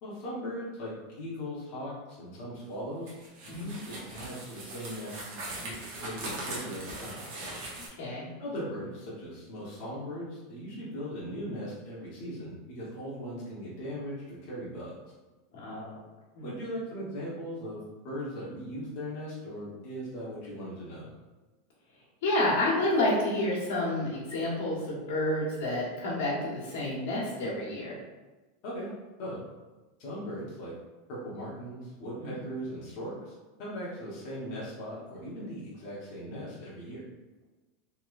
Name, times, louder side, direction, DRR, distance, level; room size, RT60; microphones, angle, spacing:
voice 1, 0.0-3.1 3.4-7.3 8.4-15.0 16.4-21.1 28.6-28.9 29.2-29.4 30.0-30.7 31.1-33.3 33.6-37.0, equal, 40° left, -8 dB, 1.0 m, -39 dB
sound 1, 3.1-7.9, right 2 dB, 50° right, 0.8 m, -40 dB
voice 2, 8.0-8.3 15.5-16.0 16.3-16.5 22.2-27.9 32.2-32.4, left 1 dB, 80° left, -6 dB, 1.2 m, -29 dB
3.1 x 2.9 x 2.5 m, 1.2 s
supercardioid pair, 175°, 0 cm